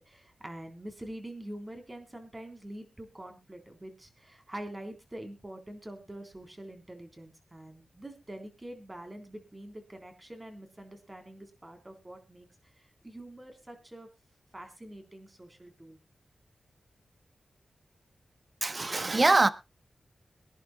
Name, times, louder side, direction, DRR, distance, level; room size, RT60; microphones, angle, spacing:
voice 1, 0.0-12.5 12.8-14.1 14.5-16.0, right 1 dB, 20° right, 3.6 m, -45 dB
voice 2, 18.6-19.5, right 3 dB, 35° right, 0.9 m, -23 dB
23.0 x 11.0 x 2.2 m
cardioid pair, 70°, 0 cm